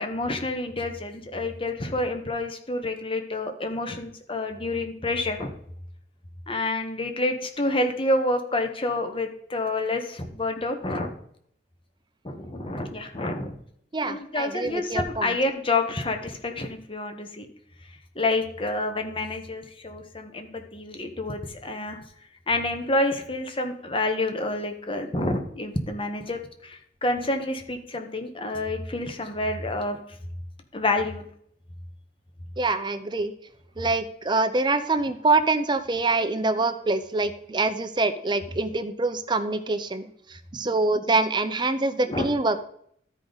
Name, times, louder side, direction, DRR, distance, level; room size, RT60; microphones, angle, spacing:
voice 1, 0.0-5.5 6.5-11.1 12.2-13.6 14.0-17.5 18.1-22.0 22.5-30.0 30.7-31.3 42.1-42.3, left 2 dB, 30° left, 6 dB, 1.1 m, -28 dB
voice 2, 13.9-15.3 32.6-33.3 33.8-40.0 40.3-42.6, right 3 dB, 25° right, 10 dB, 0.6 m, -25 dB
13.0 x 5.0 x 4.0 m, 0.66 s
head